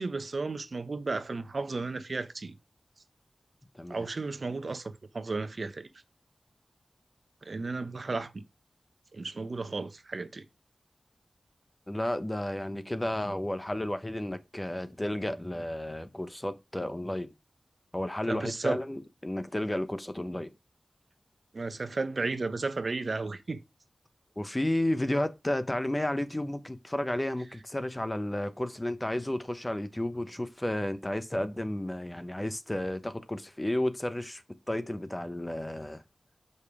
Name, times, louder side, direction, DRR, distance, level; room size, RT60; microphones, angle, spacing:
voice 1, 0.0-2.5 3.9-5.9 7.4-8.4 9.1-10.4 18.3-18.8 21.5-23.6, right 3 dB, 65° right, 0.9 m, -34 dB
voice 2, 11.9-17.3 17.9-20.5 24.4-34.4 34.7-36.0, left 1 dB, 20° left, 1.1 m, -32 dB
6.7 x 5.5 x 4.9 m
wide cardioid pair, 55°, 0 cm